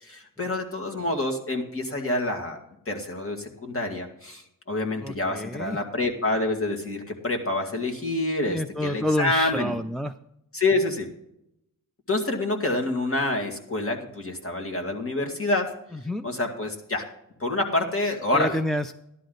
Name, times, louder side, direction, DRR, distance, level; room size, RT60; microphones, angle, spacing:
voice 1, 0.0-2.6 2.9-9.8 10.5-11.1 12.1-15.7 16.2-17.0 17.4-18.6, left 2 dB, 40° left, 3 dB, 2.2 m, -27 dB
voice 2, 5.0-5.8 8.4-10.1 15.9-16.3 18.3-18.9, left 1 dB, ahead, 6 dB, 0.4 m, -28 dB
13.5 x 11.0 x 3.9 m, 0.80 s
wide cardioid pair, 100°, 34 cm